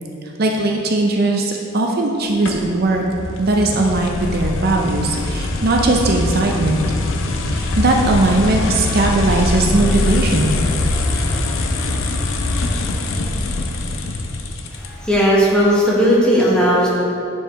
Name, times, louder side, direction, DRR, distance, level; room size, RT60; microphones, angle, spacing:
voice 1, 0.4-3.0 3.4-6.8 7.5-10.5, right 2 dB, 50° right, 1 dB, 0.5 m, -18 dB
sound 1, 2.4-15.1, left 2 dB, 85° left, 0.5 m, -22 dB
voice 2, 14.7-16.9, equal, 5° left, -6 dB, 1.2 m, -16 dB
9.7 x 4.6 x 3.1 m, 2.7 s
head